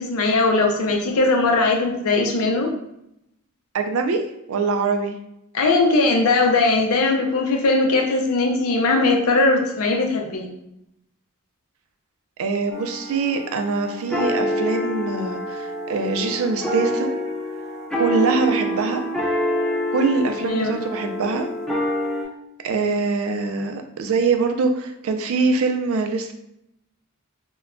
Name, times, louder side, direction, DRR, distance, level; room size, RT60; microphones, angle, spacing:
voice 1, 0.0-2.7 5.5-10.5 20.5-20.8, left 3 dB, 85° left, 1 dB, 0.6 m, -19 dB
voice 2, 3.7-4.2 4.5-5.2 12.4-17.2 18.0-19.0 19.9-21.5 22.6-26.3, right 4 dB, 70° right, 6 dB, 0.4 m, -23 dB
sound 1, 12.7-22.3, equal, 5° left, 0.4 m, -26 dB
2.2 x 2.1 x 3.6 m, 0.82 s
head